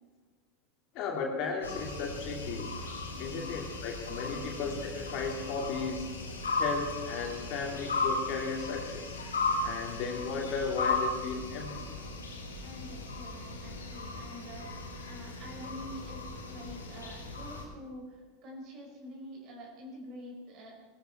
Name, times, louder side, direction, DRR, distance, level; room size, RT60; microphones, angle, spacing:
voice 1, 0.9-2.7 3.2-6.1 6.6-9.1 9.6-11.9, left 5 dB, 50° left, 1 dB, 2.8 m, -35 dB
sound 1, 1.6-17.6, left 3 dB, 85° left, 2.7 m, -36 dB
voice 2, 3.1-3.6 4.2-4.5 12.6-20.9, equal, 50° right, 0 dB, 5.7 m, -47 dB
19.0 x 14.0 x 4.5 m, 1.5 s
hypercardioid pair, 85°, 0 cm